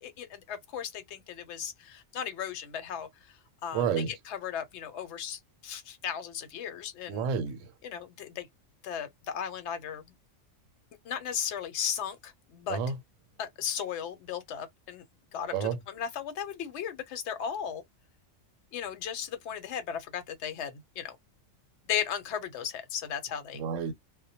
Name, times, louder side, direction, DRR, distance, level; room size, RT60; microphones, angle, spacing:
voice 1, 0.0-3.3 3.6-3.8 4.3-7.3 7.8-8.5 8.8-10.0 11.0-12.8 13.4-15.0 15.3-17.8 18.7-21.2 21.9-23.6, left 8 dB, 65° left, 0.9 m, -36 dB
voice 2, 3.7-4.1 7.1-7.7 12.7-13.0 15.5-15.8 23.5-23.9, right 7 dB, 75° right, 0.9 m, -30 dB
2.1 x 2.1 x 2.7 m
omnidirectional pair, 1.4 m